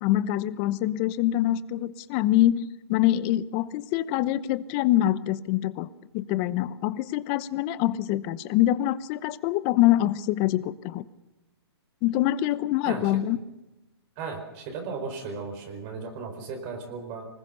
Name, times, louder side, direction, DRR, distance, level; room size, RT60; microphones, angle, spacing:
voice 1, 0.0-5.9 6.1-11.1 12.0-13.4, left 14 dB, 30° left, 16 dB, 0.9 m, -25 dB
voice 2, 14.2-17.3, right 4 dB, 35° right, 3 dB, 4.7 m, -36 dB
24.5 x 20.0 x 7.0 m, 1.0 s
hypercardioid pair, 135°, 14 cm